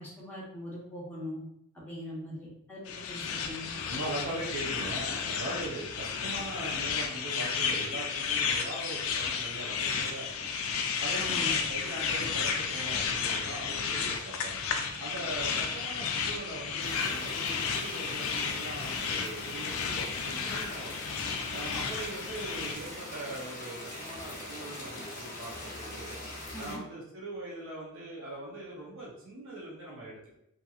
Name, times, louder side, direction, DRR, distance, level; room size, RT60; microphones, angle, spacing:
voice 1, 0.0-1.4 1.7-3.8 11.2-11.5 26.5-26.8, left 1 dB, 10° left, -6 dB, 0.8 m, -41 dB
sound 1, 2.9-22.7, left 6 dB, 75° left, 0.3 m, -32 dB
voice 2, 3.9-10.5 11.0-14.6 15.0-21.0 21.5-26.2 26.6-30.4, right 1 dB, 65° right, -5 dB, 0.6 m, -41 dB
sound 2, 16.8-26.8, left 1 dB, 35° left, 0.7 m, -42 dB
2.8 x 2.5 x 2.3 m, 0.77 s
head